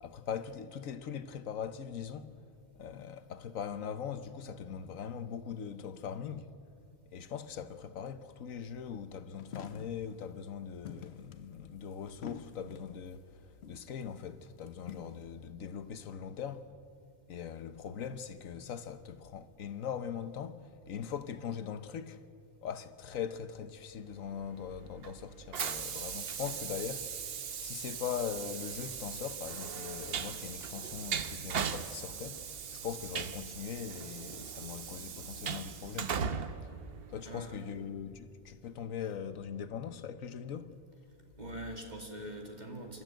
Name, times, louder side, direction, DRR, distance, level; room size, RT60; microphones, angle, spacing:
voice 1, 0.0-2.3 2.7-6.5 7.1-13.4 13.7-16.7 17.3-22.2 22.6-27.1 27.6-32.5 32.7-36.4 37.1-40.7, left 8 dB, 80° left, 1.3 m, -41 dB
sound 1, 9.4-10.1 10.8-13.1 13.6-13.9 14.5-15.2, left 7 dB, 55° left, 1.0 m, -47 dB
Train, 24.4-37.6, right 7 dB, 50° right, 0.9 m, -39 dB
voice 2, 37.2-37.9 41.4-43.0, right 1 dB, 30° right, 2.5 m, -43 dB
27.5 x 13.0 x 9.1 m
omnidirectional pair, 1.4 m